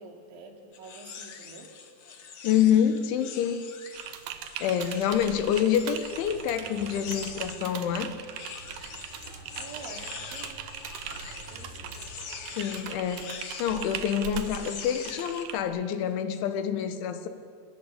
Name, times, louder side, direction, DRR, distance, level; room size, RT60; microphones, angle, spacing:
voice 1, 0.0-1.7 9.6-10.6 11.1-12.0, right 3 dB, 80° right, 3 dB, 5.4 m, -47 dB
sound 1, 0.7-7.7 8.2-15.5, left 6 dB, 65° left, 1.3 m, -44 dB
voice 2, 2.4-3.6 4.6-8.1 12.6-17.3, left 9 dB, 85° left, 10 dB, 3.9 m, -27 dB
Typing, 3.9-15.6, right 9 dB, 65° right, 2.6 m, -40 dB
sound 2, 5.2-12.6, equal, 45° left, 6.5 m, -50 dB
25.5 x 21.5 x 8.4 m, 2.3 s
omnidirectional pair, 5.3 m